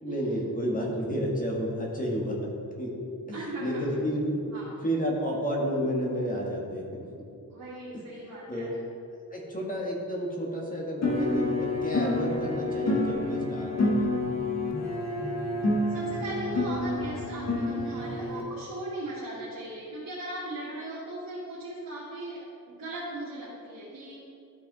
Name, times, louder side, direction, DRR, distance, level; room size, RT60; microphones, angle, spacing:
voice 1, 0.0-2.5 2.8-2.9 3.3-4.5 4.8-7.3 7.9-8.0 8.5-8.7 9.3-14.2, equal, 25° left, -2 dB, 1.4 m, -31 dB
voice 2, 3.3-4.0 4.5-4.8 7.5-8.7 15.9-24.3, right 1 dB, 80° right, -11 dB, 2.2 m, -38 dB
sound 1, 11.0-18.4, left 2 dB, 50° left, 1.2 m, -28 dB
12.5 x 4.9 x 4.0 m, 2.5 s
wide cardioid pair, 165°, 34 cm